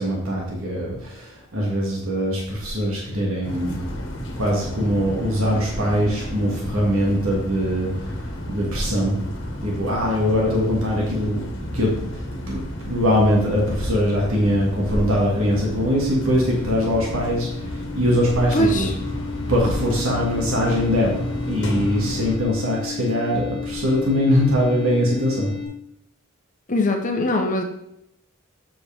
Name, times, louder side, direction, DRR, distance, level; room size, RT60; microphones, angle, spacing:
voice 1, 0.0-3.9 4.3-9.2 9.6-11.4 11.7-18.9 19.5-25.5, equal, 75° right, -3 dB, 2.2 m, -22 dB
sound 1, 3.4-22.4, equal, 55° left, 1.5 m, -32 dB
sound 2, 15.4-25.7, left 6 dB, 25° right, 2.8 m, -34 dB
voice 2, 18.5-18.9 26.7-27.6, left 1 dB, 35° left, 3 dB, 1.0 m, -21 dB
7.7 x 6.2 x 3.6 m, 0.79 s
head